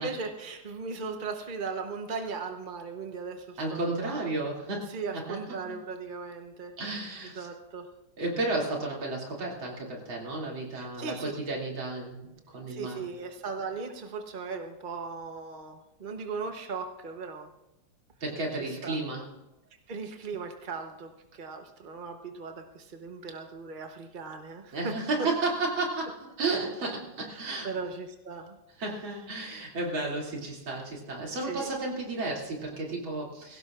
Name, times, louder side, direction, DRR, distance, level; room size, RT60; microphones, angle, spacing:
voice 1, 0.0-4.3 4.9-6.7 7.3-7.9 10.7-11.3 12.7-17.5 18.6-19.0 19.9-25.0 26.5-26.6 27.3-28.9 31.4-31.7, right 4 dB, 45° right, 4 dB, 0.6 m, -38 dB
voice 2, 3.6-5.7 6.8-7.5 8.2-13.0 18.2-19.3 24.7-27.7 28.8-33.6, right 2 dB, 70° right, -2 dB, 3.5 m, -33 dB
21.5 x 17.0 x 2.5 m, 0.91 s
omnidirectional pair, 2.3 m